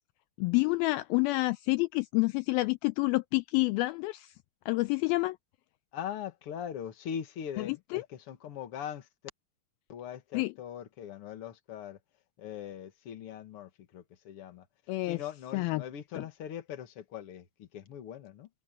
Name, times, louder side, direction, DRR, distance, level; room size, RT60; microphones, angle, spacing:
voice 1, 0.4-4.3 4.7-5.4 7.6-7.7 7.9-8.0 10.3-10.5 14.9-15.2 15.5-15.8, left 23 dB, 80° left, 2.3 m, -28 dB
voice 2, 5.9-9.1 9.9-12.0 12.4-14.7 15.0-18.5, left 9 dB, 50° left, 1.8 m, -41 dB
omnidirectional pair, 4.5 m